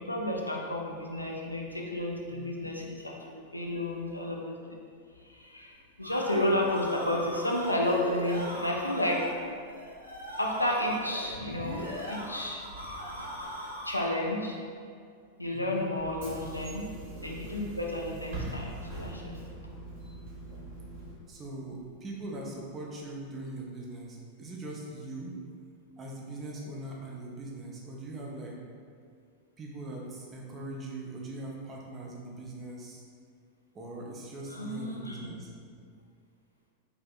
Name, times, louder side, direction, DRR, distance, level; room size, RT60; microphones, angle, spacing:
voice 1, 0.0-4.5 5.2-9.4 10.4-11.8 12.1-12.6 13.8-14.6 15.4-16.9 17.2-19.4 34.5-35.3, left 1 dB, 85° left, -1 dB, 0.3 m, -31 dB
voice 2, 2.3-2.7 15.5-15.9 21.3-25.4 26.0-28.6 29.6-33.0 33.7-35.5, right 2 dB, 25° right, -2 dB, 0.5 m, -41 dB
sound 1, 5.7-14.2, equal, 85° right, 0.5 m, -40 dB
Bus / Engine, 16.0-21.1, right 2 dB, 55° right, 0.9 m, -41 dB
3.3 x 2.6 x 2.3 m, 2.2 s
figure-of-eight pair, 90°, 0 cm